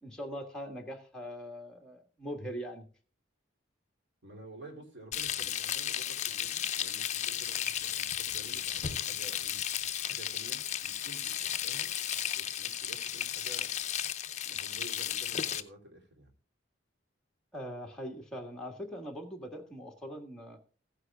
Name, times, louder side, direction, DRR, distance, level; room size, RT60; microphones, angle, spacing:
voice 1, 0.0-2.9 17.5-20.6, equal, 5° left, 2 dB, 1.6 m, -41 dB
voice 2, 4.2-9.6 10.0-11.9 12.3-13.7 14.4-16.3, right 2 dB, 55° right, 2 dB, 2.8 m, -51 dB
Frying (food), 5.1-15.6, left 10 dB, 35° left, 0.6 m, -34 dB
16.0 x 9.6 x 2.4 m, 0.39 s
head